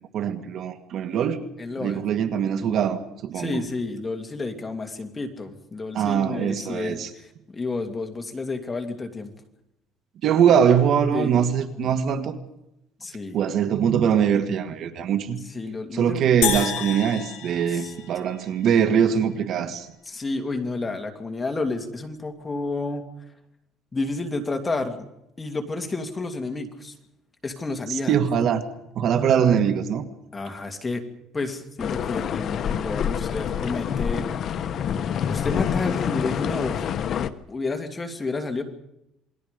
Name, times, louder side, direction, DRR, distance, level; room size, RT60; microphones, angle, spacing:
voice 1, 0.1-1.4 1.8-3.6 5.9-7.1 10.2-12.3 13.3-15.4 15.9-19.9 28.1-28.6 29.0-30.0, right 8 dB, 55° right, 8 dB, 1.8 m, -22 dB
voice 2, 1.6-2.0 3.3-9.3 11.1-11.3 13.0-13.4 15.5-16.3 17.7-17.9 20.1-23.1 23.9-25.1 25.4-26.9 27.4-28.2 30.3-31.0 31.3-34.3 35.3-36.8 37.5-38.6, left 3 dB, 15° left, 5 dB, 2.4 m, -30 dB
sound 1, 16.4-18.8, left 10 dB, 85° left, 5.5 m, -30 dB
sound 2, 31.8-37.3, left 8 dB, 45° left, 1.0 m, -27 dB
28.0 x 21.0 x 5.2 m, 0.83 s
cardioid pair, 135°, 0 cm